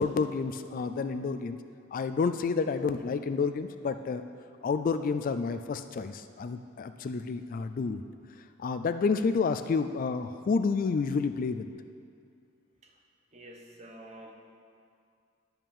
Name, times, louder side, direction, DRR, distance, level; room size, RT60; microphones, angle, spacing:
voice 1, 0.0-1.6 1.9-4.2 4.6-8.0 8.6-11.7, left 4 dB, 40° left, 10 dB, 0.3 m, -29 dB
voice 2, 13.3-14.3, right 1 dB, 35° right, 1 dB, 1.1 m, -48 dB
10.5 x 5.7 x 7.1 m, 2.3 s
head